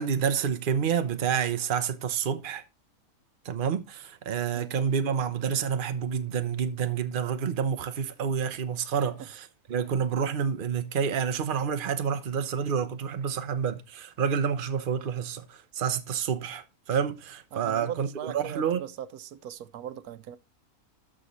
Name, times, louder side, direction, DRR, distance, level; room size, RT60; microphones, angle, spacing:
voice 1, 0.0-2.6 3.4-18.8, right 7 dB, 45° right, 0.9 m, -29 dB
voice 2, 17.5-20.4, right 9 dB, 90° right, 1.2 m, -39 dB
12.5 x 5.1 x 4.1 m
omnidirectional pair, 1.5 m